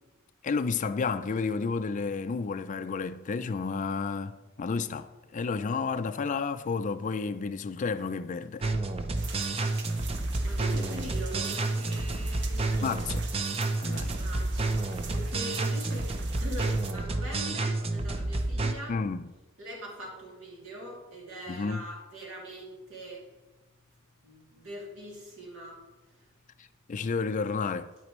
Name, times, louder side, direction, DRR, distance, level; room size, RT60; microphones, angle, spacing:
voice 1, 0.4-8.8 12.8-13.2 13.8-14.2 18.9-19.3 21.5-21.9 26.6-27.9, left 4 dB, 40° left, 0.3 m, -31 dB
sound 1, 8.6-18.7, right 2 dB, 30° right, 0.5 m, -30 dB
sound 2, 9.2-16.9, right 5 dB, 55° right, 0.8 m, -45 dB
voice 2, 10.4-12.6 14.2-18.9 19.6-23.2 24.2-25.8, equal, 75° right, 2.7 m, -42 dB
9.4 x 8.2 x 3.1 m
head